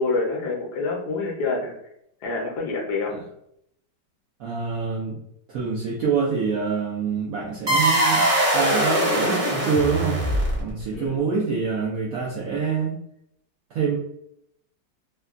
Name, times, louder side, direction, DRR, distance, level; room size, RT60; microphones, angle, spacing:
voice 1, 0.0-1.7 2.2-3.2 10.9-11.1, left 3 dB, 70° left, -1 dB, 1.2 m, -26 dB
voice 2, 4.4-5.2 5.5-8.3 8.5-10.2 10.6-13.0 13.7-14.0, right 5 dB, 90° right, -3 dB, 0.7 m, -26 dB
sound 1, 7.7-10.8, right 1 dB, 40° right, 0.6 m, -21 dB
3.3 x 2.2 x 2.4 m, 0.75 s
omnidirectional pair, 2.1 m